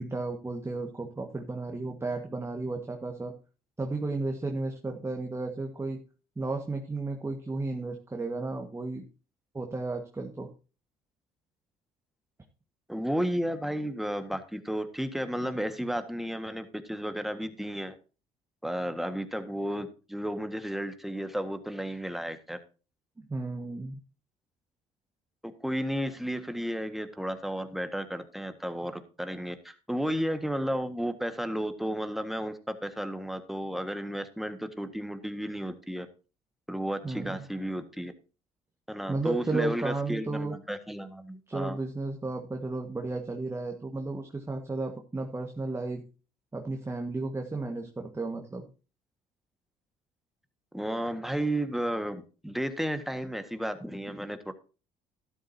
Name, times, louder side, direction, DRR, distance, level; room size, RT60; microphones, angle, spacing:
voice 1, 0.0-3.3 3.8-6.0 6.4-9.0 9.5-10.5 23.2-24.0 37.0-37.4 39.1-40.6 41.5-46.0 46.5-48.6, right 3 dB, 20° right, 3 dB, 1.6 m, -33 dB
voice 2, 12.9-17.9 18.6-22.6 25.4-36.1 36.7-38.1 38.9-41.8 50.7-54.5, equal, ahead, 8 dB, 1.6 m, -33 dB
12.5 x 11.5 x 2.8 m, 0.34 s
supercardioid pair, 80°, 15 cm